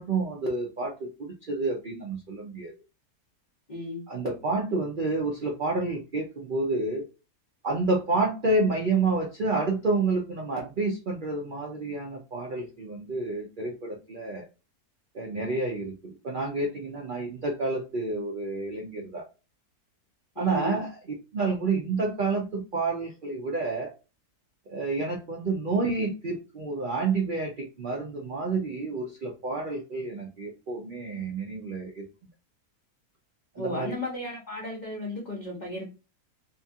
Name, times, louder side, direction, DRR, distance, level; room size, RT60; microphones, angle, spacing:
voice 1, 0.0-2.7 4.1-7.0 7.6-14.5 15.1-19.2 20.4-20.9 21.3-23.9 24.7-32.1 33.5-33.9, right 3 dB, 75° right, 0.4 m, -29 dB
voice 2, 3.7-4.0 20.4-20.8 33.6-35.8, left 1 dB, 40° left, 0.6 m, -34 dB
2.8 x 2.3 x 2.6 m
omnidirectional pair, 1.7 m